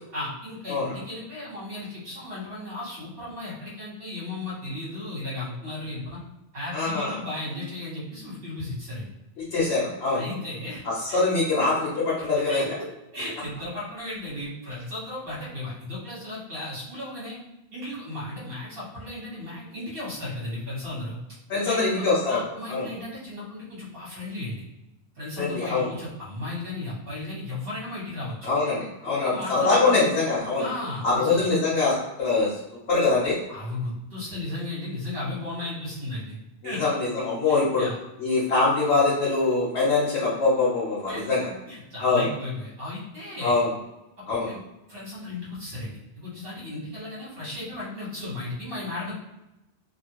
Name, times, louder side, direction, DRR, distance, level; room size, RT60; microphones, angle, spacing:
voice 1, 0.1-6.2 6.5-9.1 10.1-10.8 11.1-11.2 12.2-17.4 17.7-21.2 21.6-24.6 25.1-28.5 29.0-30.0 30.6-31.5 33.5-36.4 36.6-36.9 37.5-38.0 41.1-43.6 44.3-44.6 44.9-49.1, left 2 dB, 60° right, -7 dB, 1.5 m, -35 dB
voice 2, 6.7-7.2 9.5-10.2 11.1-12.6 21.5-22.4 22.7-22.9 25.4-25.9 28.4-30.7 31.0-32.5 32.9-33.4 36.6-37.8 38.2-41.4 42.0-42.3 43.4-43.7 44.3-44.5, left 3 dB, 80° left, -7 dB, 1.1 m, -23 dB
2.8 x 2.5 x 2.9 m, 0.92 s
omnidirectional pair, 1.1 m